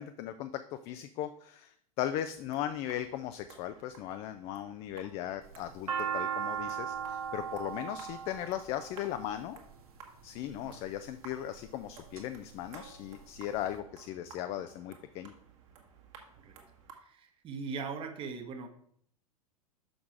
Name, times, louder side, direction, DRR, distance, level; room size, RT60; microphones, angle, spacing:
voice 1, 0.0-9.6 10.2-15.3, left 11 dB, 30° left, 10 dB, 0.4 m, -38 dB
sound 1, 2.3-16.9, right 5 dB, 50° right, 1.6 m, -56 dB
sound 2, 5.4-9.7 10.5-11.0 11.6-12.2 12.6-12.7 12.8-13.7, right 8 dB, 70° right, 1.2 m, -36 dB
voice 2, 16.9-18.7, right 5 dB, 25° right, 5 dB, 1.0 m, -40 dB
6.3 x 5.9 x 4.6 m, 0.64 s
figure-of-eight pair, 90°, 19 cm